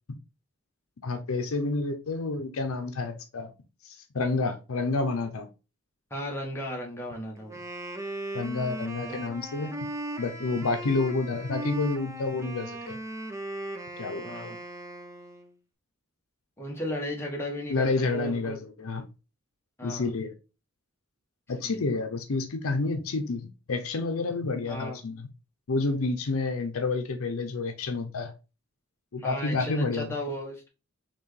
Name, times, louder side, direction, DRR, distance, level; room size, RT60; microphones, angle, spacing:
voice 1, 1.0-3.5 3.8-5.5 8.3-9.7 10.2-13.0 14.0-14.3 17.7-19.0 19.8-20.3 21.5-25.3 25.7-28.3 29.1-30.1, left 3 dB, 70° left, 0.6 m, -29 dB
voice 2, 6.1-7.6 14.2-14.5 16.6-18.5 19.8-20.1 21.6-21.8 24.7-25.0 29.2-30.7, equal, 10° left, 1.1 m, -35 dB
Wind instrument woodwind instrument, 7.4-15.5, right 1 dB, 15° right, 0.6 m, -38 dB
4.5 x 3.1 x 3.1 m
head